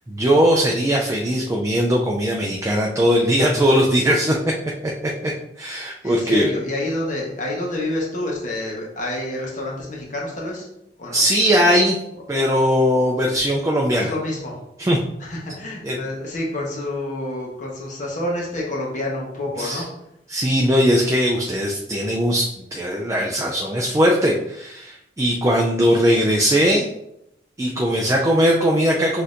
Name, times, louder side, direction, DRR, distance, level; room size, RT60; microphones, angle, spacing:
voice 1, 0.1-4.4 5.2-5.3 5.6-6.5 11.1-12.0 12.3-14.1 14.8-15.0 15.8-16.0 19.6-19.8 20.3-26.9 27.6-29.2, equal, 15° right, -1 dB, 0.4 m, -19 dB
voice 2, 6.0-10.7 11.0-11.2 13.9-14.6 15.2-19.9 26.1-26.2, left 1 dB, 45° left, -2 dB, 1.1 m, -28 dB
6.2 x 2.7 x 2.5 m, 0.81 s
head